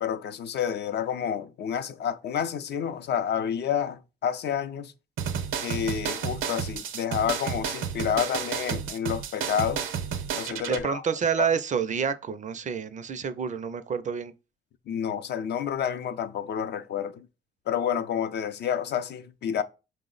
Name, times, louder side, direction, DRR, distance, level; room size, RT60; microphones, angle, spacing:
voice 1, 0.0-4.9 5.6-9.9 10.3-11.0 11.4-11.5 14.9-17.3 17.7-19.6, left 8 dB, 60° left, 0.4 m, -29 dB
sound 1, 5.2-10.8, right 7 dB, 85° right, 0.6 m, -31 dB
voice 2, 10.7-14.3, right 7 dB, 40° right, 0.4 m, -28 dB
4.6 x 2.0 x 3.9 m
cardioid pair, 90°, 20 cm